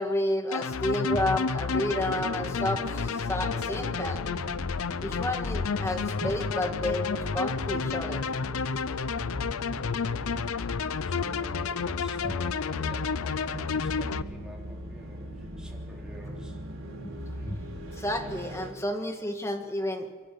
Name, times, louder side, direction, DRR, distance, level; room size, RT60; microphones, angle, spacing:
voice 1, 0.0-4.2 5.0-8.2 12.2-12.3 17.4-17.6 18.0-20.1, left 1 dB, 15° left, 4 dB, 1.9 m, -31 dB
sound 1, 0.5-14.2, left 5 dB, 75° left, 0.6 m, -31 dB
sound 2, 1.7-18.7, equal, 60° right, 4.3 m, -40 dB
voice 2, 10.0-10.7 11.0-16.6 17.4-17.5, equal, 5° right, -1 dB, 3.6 m, -48 dB
28.0 x 11.5 x 8.5 m, 1.5 s
head